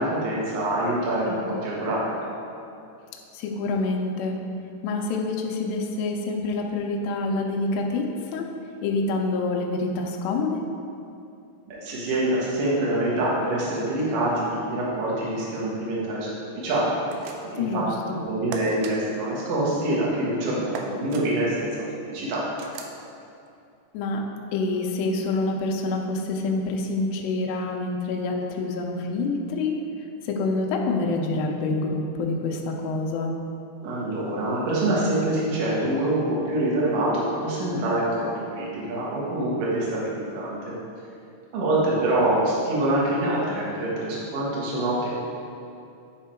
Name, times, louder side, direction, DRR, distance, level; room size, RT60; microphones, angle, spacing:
voice 1, 0.0-2.1 11.7-17.0 17.4-17.9 18.1-22.4 33.8-40.7 41.5-45.1, right 1 dB, 60° right, -6 dB, 2.6 m, -25 dB
voice 2, 3.3-4.4 4.8-8.5 8.8-10.6 17.6-18.2 23.9-24.2 24.5-29.8 30.2-33.3, left 3 dB, 85° left, 1 dB, 2.0 m, -27 dB
sound 1, 17.1-17.7 18.5-18.9 20.7-21.3 22.6-23.0, right 5 dB, 80° right, 2.6 m, -37 dB
10.0 x 3.6 x 4.5 m, 2.6 s
omnidirectional pair, 5.0 m